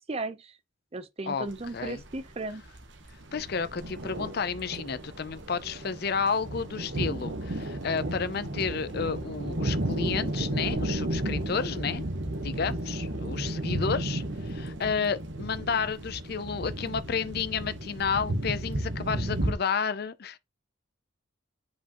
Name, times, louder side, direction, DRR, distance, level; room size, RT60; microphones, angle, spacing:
voice 1, 0.1-0.5 0.9-2.6, right 2 dB, 30° right, 0.6 m, -35 dB
sound 1, 1.5-19.5, right 1 dB, 60° right, 1.1 m, -33 dB
voice 2, 3.3-12.0 12.4-20.4, left 6 dB, 50° left, 0.5 m, -31 dB
7.7 x 5.2 x 2.9 m
head